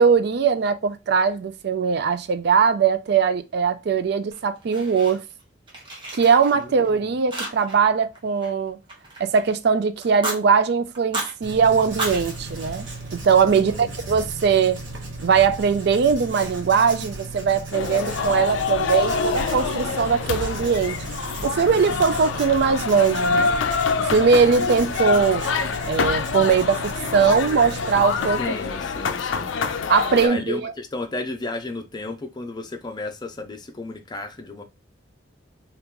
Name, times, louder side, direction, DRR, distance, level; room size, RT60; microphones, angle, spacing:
voice 1, 0.0-5.2 6.1-8.8 9.2-12.9 13.1-14.8 15.2-21.0 21.4-23.5 24.0-25.5 25.9-28.4 29.9-30.7, right 6 dB, 60° right, 0.4 m, -20 dB
Fire, 4.3-5.4 5.7-6.9 7.3-7.9 8.1-9.5 10.0-10.4 10.9-11.3 11.8-13.4, right 2 dB, 25° right, 1.1 m, -33 dB
voice 2, 6.5-7.1 13.5-13.9 28.4-29.6 30.1-34.6, left 2 dB, 25° left, 0.5 m, -33 dB
Writing, 11.4-28.5, right 2 dB, 80° right, 1.0 m, -35 dB
sound 1, 17.7-30.3, left 5 dB, 85° left, 0.4 m, -26 dB
3.0 x 2.4 x 3.5 m
head